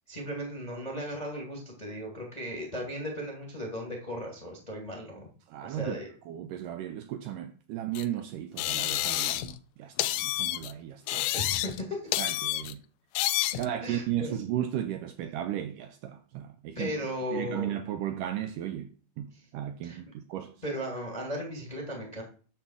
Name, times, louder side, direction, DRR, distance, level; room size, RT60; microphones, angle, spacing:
voice 1, 0.1-5.3 5.6-6.1 11.3-12.1 13.8-14.3 16.7-17.7 19.8-20.0 20.6-22.2, equal, 20° left, 1.3 m, -36 dB
voice 2, 5.5-6.0 6.3-11.3 12.2-12.8 13.6-16.9 17.3-20.6, right 11 dB, 80° right, 2.0 m, -35 dB
sound 1, 8.0-8.1 8.6-9.6 10.0-10.7 11.1-11.8 12.1-12.7 13.2-13.7, left 15 dB, 85° left, 2.5 m, -29 dB
10.5 x 3.7 x 7.2 m
omnidirectional pair, 4.2 m